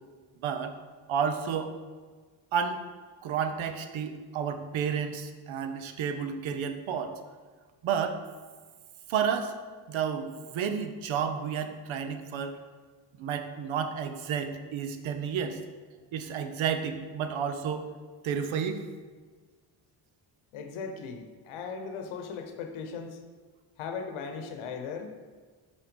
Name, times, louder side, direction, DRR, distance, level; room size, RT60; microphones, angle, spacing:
voice 1, 0.4-0.7 1.1-1.7 2.5-2.8 3.2-7.1 7.8-8.2 9.1-9.6 9.9-12.6 13.2-15.6 16.1-17.9 18.2-18.9, right 7 dB, 70° right, 8 dB, 0.8 m, -31 dB
voice 2, 20.5-23.2 23.8-25.1, left 5 dB, 80° left, 6 dB, 0.9 m, -38 dB
5.8 x 4.7 x 5.2 m, 1.5 s
supercardioid pair, 65°, 49 cm